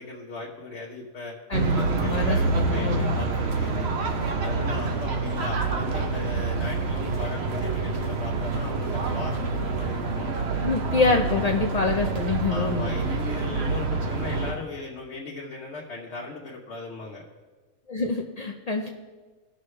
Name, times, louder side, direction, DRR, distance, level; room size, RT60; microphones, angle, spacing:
voice 1, 0.0-1.3 1.8-3.9 4.4-10.4 11.1-11.2 12.5-17.2, left 3 dB, 55° left, -2 dB, 1.2 m, -37 dB
voice 2, 1.5-3.1 10.6-12.9 17.9-18.9, left 4 dB, 75° left, 2 dB, 0.3 m, -26 dB
sound 1, 1.5-14.5, right 3 dB, 55° right, 1.0 m, -27 dB
17.0 x 6.3 x 3.2 m, 1.3 s
omnidirectional pair, 1.5 m